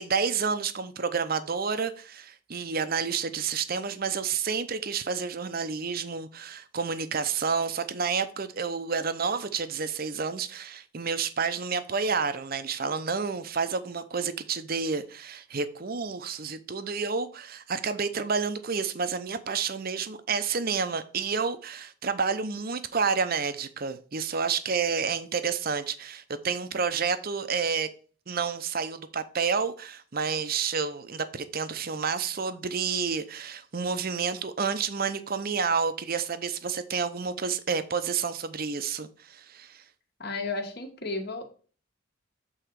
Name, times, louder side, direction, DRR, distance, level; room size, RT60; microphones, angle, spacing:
voice 1, 0.0-27.9 28.3-39.8, right 5 dB, 45° right, 0.6 m, -30 dB
voice 2, 40.2-41.4, left 3 dB, 50° left, 1.5 m, -33 dB
7.9 x 3.9 x 4.6 m
head